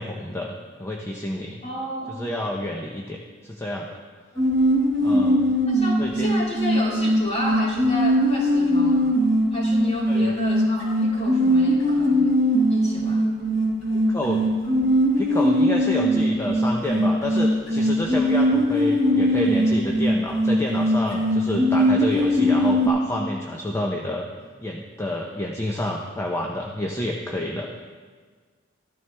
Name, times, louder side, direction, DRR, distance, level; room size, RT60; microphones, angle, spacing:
voice 1, 0.0-1.6 2.1-3.2 3.4-3.9 5.0-5.5 6.0-6.3 10.1-10.4 14.1-14.4 15.2-24.3 24.6-27.8, left 1 dB, 15° left, 0 dB, 0.7 m, -29 dB
voice 2, 1.6-2.4 5.7-9.1 9.5-12.4 12.7-13.2, left 1 dB, 35° left, -4 dB, 2.7 m, -31 dB
sound 1, 4.3-22.9, equal, 80° left, 3.8 m, -21 dB
14.0 x 12.5 x 3.4 m, 1.5 s
head